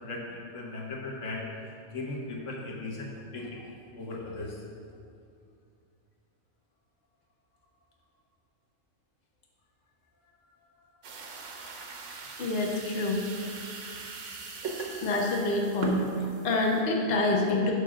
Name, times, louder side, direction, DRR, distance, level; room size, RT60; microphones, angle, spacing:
voice 1, 0.0-1.4 1.9-3.6 4.0-4.5, left 2 dB, 80° left, -2 dB, 1.5 m, -37 dB
sound 1, 11.0-16.8, right 3 dB, 75° right, 1.2 m, -40 dB
voice 2, 12.4-13.2 15.0-17.7, left 2 dB, 55° left, -1 dB, 1.0 m, -27 dB
6.8 x 5.2 x 6.2 m, 2.3 s
omnidirectional pair, 1.3 m